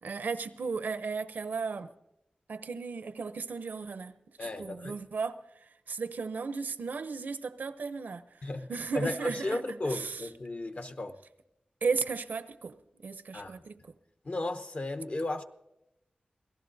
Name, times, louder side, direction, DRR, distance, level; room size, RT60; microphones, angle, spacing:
voice 1, 0.0-1.9 2.5-4.1 4.4-5.4 5.9-10.3 11.8-13.8, right 4 dB, 85° right, 0.6 m, -35 dB
voice 2, 4.4-5.0 8.4-8.7 8.9-11.2 13.3-13.6 14.2-15.4, left 2 dB, 50° left, 0.9 m, -35 dB
27.0 x 18.0 x 2.7 m
wide cardioid pair, 85°, 3 cm